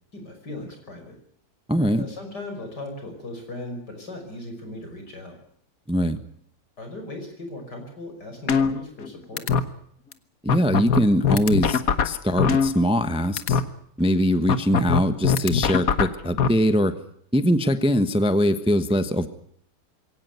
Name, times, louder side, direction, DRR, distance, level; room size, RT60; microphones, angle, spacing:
voice 1, 0.1-1.2 1.9-5.4 6.8-9.5, left 2 dB, 75° left, 5 dB, 6.1 m, -38 dB
voice 2, 1.7-2.0 5.9-6.2 10.4-13.6 14.0-16.9 17.3-19.3, equal, 5° right, 11 dB, 1.0 m, -22 dB
sound 1, 8.5-9.1 9.4-9.6 10.1-10.2 10.5-13.1 13.4-13.6 14.5-16.5, left 6 dB, 55° left, 1.6 m, -21 dB
22.0 x 17.5 x 9.4 m, 0.69 s
omnidirectional pair, 1.8 m